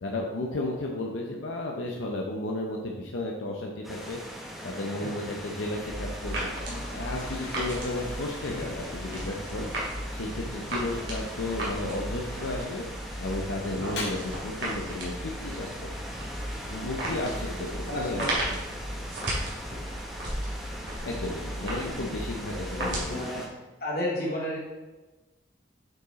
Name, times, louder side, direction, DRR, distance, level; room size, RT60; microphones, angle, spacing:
voice 1, 0.0-4.2 4.6-6.5 6.9-9.7 10.1-12.8 13.2-15.9 16.7-18.3 21.0-23.3, left 2 dB, 85° left, 0 dB, 0.8 m, -33 dB
sound 1, 3.8-23.5, equal, ahead, 1.0 m, -41 dB
sound 2, 5.8-23.1, right 1 dB, 65° right, 2.4 m, -35 dB
Toilet flush, 6.4-23.4, left 2 dB, 65° left, 1.7 m, -46 dB
voice 2, 17.9-18.3 21.7-21.9 22.7-23.4 23.8-24.6, left 1 dB, 50° left, -6 dB, 2.5 m, -32 dB
7.9 x 4.7 x 4.1 m, 1.2 s
head